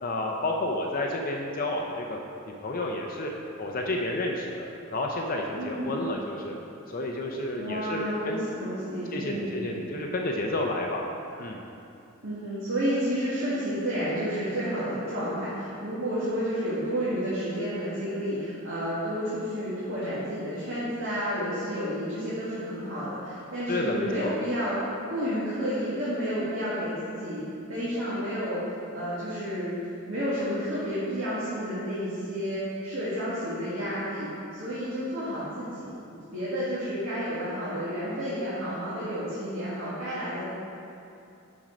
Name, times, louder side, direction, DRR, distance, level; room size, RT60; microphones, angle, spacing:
voice 1, 0.0-2.2 2.5-3.3 3.6-6.5 6.9-8.4 9.1-11.0 11.4-11.6 23.7-24.3, left 2 dB, 40° left, 0 dB, 0.6 m, -30 dB
voice 2, 5.5-6.0 7.6-9.6 12.2-24.8 25.1-27.4 27.7-29.7 30.1-40.5, equal, 60° right, -10 dB, 1.8 m, -31 dB
7.4 x 6.2 x 5.1 m, 2.7 s
head